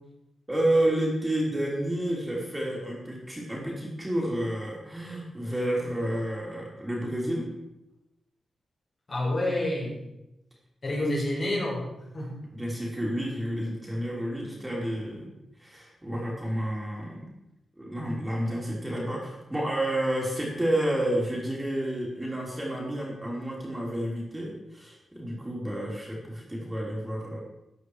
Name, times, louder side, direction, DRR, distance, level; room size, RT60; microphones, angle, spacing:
voice 1, 0.5-7.5 12.5-15.3 15.6-17.3 17.8-27.4, right 1 dB, 10° right, -3 dB, 3.5 m, -30 dB
voice 2, 9.1-10.0 10.8-11.9 12.1-12.3, left 1 dB, 40° left, -4 dB, 5.3 m, -28 dB
15.0 x 9.4 x 4.8 m, 0.91 s
wide cardioid pair, 110°, 0 cm